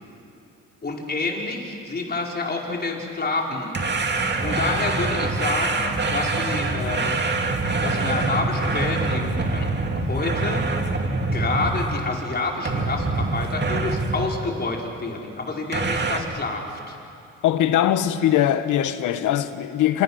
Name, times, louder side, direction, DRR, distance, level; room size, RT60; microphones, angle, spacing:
voice 1, 0.8-3.8 4.4-7.1 7.8-9.7 10.0-10.6 11.3-16.9, left 3 dB, 35° left, 4.8 m, -28 dB
sound 1, 3.7-12.2 12.6-14.4 15.7-16.2, right 3 dB, 35° right, 2.5 m, -25 dB
voice 2, 17.4-20.0, left 11 dB, 90° left, 1.3 m, -21 dB
27.5 x 27.0 x 6.4 m
cardioid pair, 90°, 30 cm